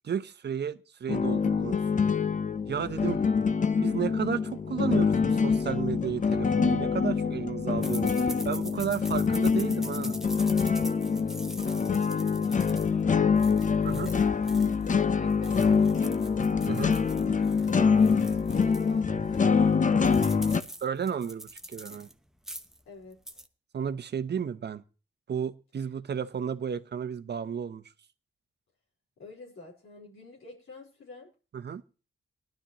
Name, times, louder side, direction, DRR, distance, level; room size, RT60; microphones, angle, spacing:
voice 1, 0.0-1.8 2.7-3.2 3.8-10.2 13.8-14.1 16.7-17.0 20.8-22.1 23.7-24.8 25.3-27.8 31.5-31.8, right 7 dB, 55° right, 0.8 m, -33 dB
sound 1, 1.1-20.6, left 5 dB, 40° left, 0.7 m, -25 dB
voice 2, 3.0-3.4 11.5-13.5 14.5-14.9 15.2-16.4 17.1-20.6 22.9-23.4 29.2-31.3, left 3 dB, 80° left, 4.4 m, -47 dB
sound 2, 7.8-15.0 15.3-18.9 19.3-19.4 19.7-22.1 22.4-22.8 23.1-23.5, right 1 dB, ahead, 0.9 m, -44 dB
19.0 x 11.5 x 3.0 m
cardioid pair, 95°, 21 cm